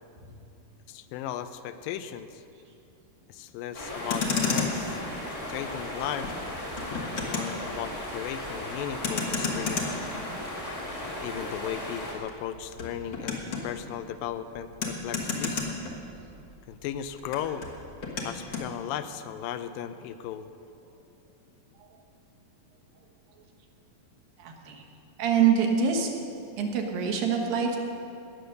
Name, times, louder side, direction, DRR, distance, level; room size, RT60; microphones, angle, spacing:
voice 1, 0.9-2.4 3.3-5.0 5.5-6.3 7.1-10.0 11.1-15.7 16.7-17.7 18.2-20.5, left 10 dB, 85° left, 11 dB, 2.2 m, -36 dB
sound 1, 3.7-12.1, left 1 dB, 20° left, 0.9 m, -36 dB
Motor vehicle (road), 3.9-16.5 16.8-18.7, left 4 dB, 50° left, 1.4 m, -34 dB
voice 2, 24.4-24.8 25.2-26.1 26.6-27.8, right 7 dB, 80° right, 2 dB, 3.0 m, -25 dB
19.5 x 6.9 x 6.5 m, 2.6 s
omnidirectional pair, 4.1 m